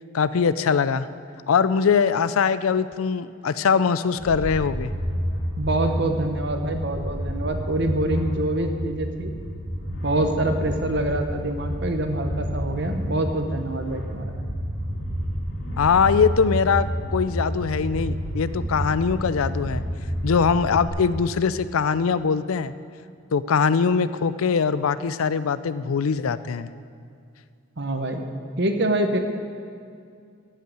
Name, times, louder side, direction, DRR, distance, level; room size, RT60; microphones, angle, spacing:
voice 1, 0.1-1.1 1.5-4.9 15.8-19.8 20.2-22.7 23.3-26.7, left 6 dB, 85° left, 15 dB, 0.4 m, -22 dB
sound 1, 4.2-20.9, equal, 65° left, 3.0 m, -30 dB
voice 2, 5.6-9.3 10.0-14.2 27.8-28.2 28.6-29.2, right 1 dB, 55° right, 6 dB, 1.0 m, -25 dB
14.0 x 5.6 x 8.9 m, 2.3 s
head